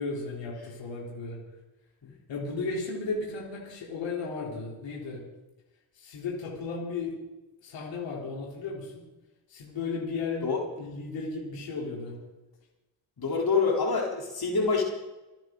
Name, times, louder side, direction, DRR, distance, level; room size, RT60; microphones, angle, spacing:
voice 1, 0.0-1.4 2.3-5.2 5.9-7.2 7.6-9.0 9.5-10.5 10.8-12.2, left 4 dB, 85° left, -3 dB, 3.9 m, -34 dB
voice 2, 13.2-14.8, left 4 dB, 55° left, 0 dB, 3.8 m, -26 dB
29.5 x 10.0 x 3.9 m, 1.0 s
supercardioid pair, 45°, 44 cm